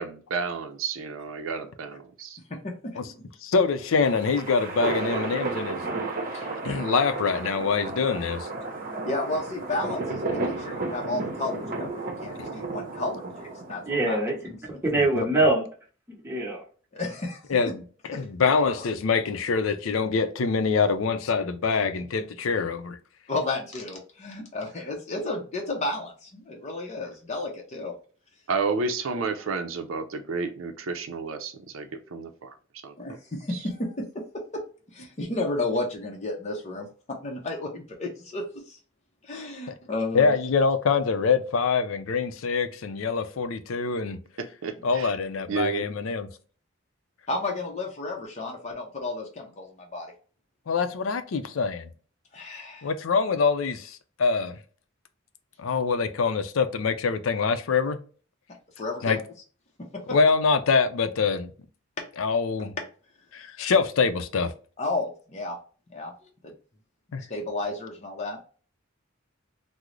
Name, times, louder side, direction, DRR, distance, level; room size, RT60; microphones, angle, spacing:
voice 1, 0.0-2.4 28.5-32.5 32.8-32.9 33.5-33.6 44.4-45.1 45.5-45.9, right 4 dB, 80° right, 0.5 m, -31 dB
voice 2, 2.6-3.2 9.0-11.9 12.2-14.2 16.9-17.4 18.1-18.2 18.8-18.9 23.3-27.9 33.0-34.2 34.5-34.6 34.9-36.9 37.2-38.8 39.2-40.3 47.3-50.1 52.3-52.9 58.8-59.2 60.1-60.2 64.8-65.6 65.9-66.1 66.4-66.5 67.2-68.4, left 2 dB, 35° left, 0.6 m, -32 dB
voice 3, 3.4-5.8 6.3-8.5 12.4-12.5 14.9-15.3 17.5-17.8 18.1-23.0 39.7-39.8 40.1-44.2 44.8-46.3 50.7-51.9 52.8-54.6 55.6-58.0 59.0-59.2 60.1-61.5 62.2-62.7 63.3-64.5 67.1-67.2, left 5 dB, 85° left, 0.5 m, -25 dB
sound 1, 3.8-14.3, right 3 dB, 45° right, 0.7 m, -33 dB
voice 4, 13.9-15.6 16.2-16.6, right 2 dB, 10° right, 0.9 m, -24 dB
3.7 x 2.0 x 3.0 m
head